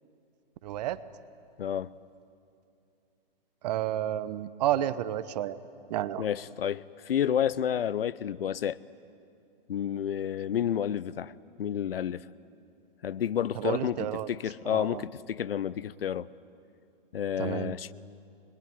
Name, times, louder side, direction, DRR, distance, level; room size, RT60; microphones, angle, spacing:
voice 1, 0.6-1.0 3.6-5.6 5.9-6.2 13.6-14.3 14.7-15.0 17.4-17.7, right 12 dB, 45° right, 1.1 m, -31 dB
voice 2, 1.6-1.9 6.2-8.8 9.7-11.3 11.6-12.3 13.0-16.3 17.1-17.9, left 9 dB, 75° left, 0.8 m, -30 dB
25.5 x 21.5 x 9.3 m
hypercardioid pair, 135°, 29 cm